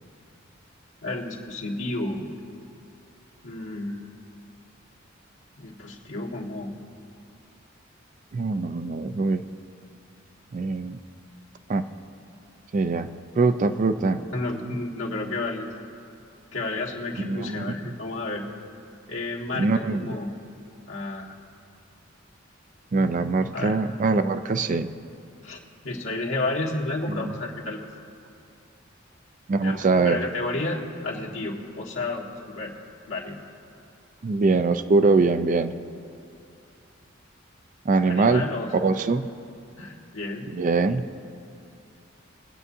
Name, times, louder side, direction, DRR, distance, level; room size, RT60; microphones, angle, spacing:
voice 1, 1.0-2.4 3.4-4.1 5.6-6.7 14.3-15.7 16.5-18.4 19.1-20.3 20.9-21.3 23.5-23.8 25.4-27.9 29.6-32.7 33.1-33.4 38.1-38.7 39.8-40.5, left 2 dB, 80° left, -3 dB, 1.6 m, -31 dB
voice 2, 8.3-9.4 10.5-11.0 11.7-11.8 12.7-13.1 13.4-14.2 17.2-17.7 19.6-20.1 22.9-24.9 27.1-27.2 29.5-30.2 34.2-35.7 37.9-38.5 38.7-39.3 40.5-41.0, right 3 dB, 40° right, 10 dB, 0.4 m, -22 dB
22.5 x 8.4 x 2.7 m, 2.5 s
head